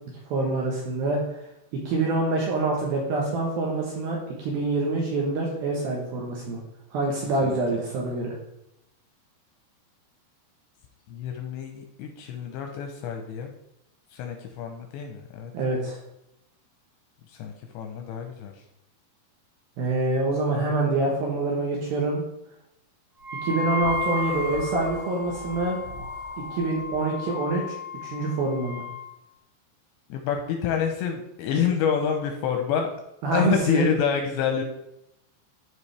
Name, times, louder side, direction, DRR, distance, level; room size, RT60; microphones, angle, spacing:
voice 1, 0.3-1.2 1.9-6.6 6.9-8.4 15.5-16.0 19.8-22.2 23.4-25.8 26.5-27.7 28.0-28.8 33.2-33.9, right 3 dB, 70° right, -2 dB, 2.4 m, -26 dB
voice 2, 7.4-7.8 11.1-13.5 14.1-15.5 17.3-18.5 30.1-32.9 33.3-34.6, left 7 dB, 80° left, 4 dB, 2.7 m, -28 dB
Wind instrument woodwind instrument, 23.2-29.1, left 4 dB, 40° right, 1.8 m, -33 dB
sound 1, 23.8-27.0, left 1 dB, 50° left, 1.5 m, -41 dB
12.5 x 5.0 x 3.3 m, 0.84 s
omnidirectional pair, 5.7 m